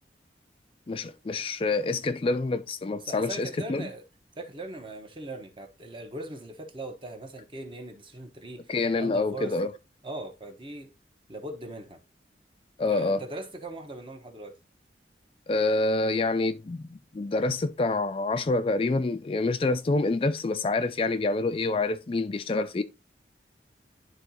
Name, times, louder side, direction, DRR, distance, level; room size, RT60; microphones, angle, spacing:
voice 1, 0.9-3.9 8.7-9.7 12.8-13.2 15.5-22.8, left 3 dB, 30° left, 0.3 m, -27 dB
voice 2, 3.1-4.0 4.4-9.5 10.0-10.9 11.3-12.0 12.9-14.5, right 2 dB, 30° right, 1.2 m, -40 dB
11.0 x 3.9 x 2.9 m
head